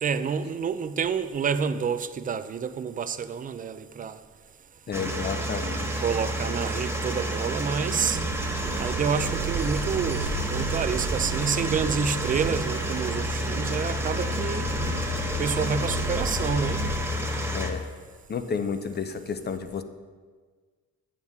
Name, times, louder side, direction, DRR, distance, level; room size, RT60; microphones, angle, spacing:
voice 1, 0.0-4.2 6.0-8.2 8.8-14.7 15.4-16.8, right 6 dB, 30° right, 0.4 m, -28 dB
voice 2, 4.9-5.9 17.5-17.8 18.3-19.8, left 6 dB, 35° left, 0.6 m, -31 dB
sound 1, 4.9-17.7, equal, 10° right, 1.1 m, -30 dB
sound 2, 7.8-16.9, right 3 dB, 55° right, 1.0 m, -34 dB
7.8 x 7.3 x 3.6 m
cardioid pair, 90°, 30 cm